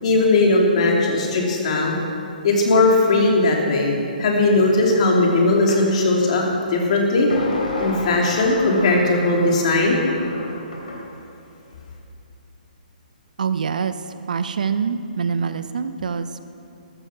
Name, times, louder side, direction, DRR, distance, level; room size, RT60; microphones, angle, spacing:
voice 1, 0.0-2.0 2.4-7.3 7.8-10.0, left 2 dB, 45° left, -1 dB, 3.2 m, -18 dB
sound 1, 5.7-5.9 7.3-11.1, left 2 dB, 65° left, 3.6 m, -32 dB
voice 2, 13.4-13.9 14.3-16.4, right 6 dB, 60° right, 12 dB, 0.7 m, -25 dB
13.5 x 13.5 x 6.1 m, 2.7 s
figure-of-eight pair, 135°, 5 cm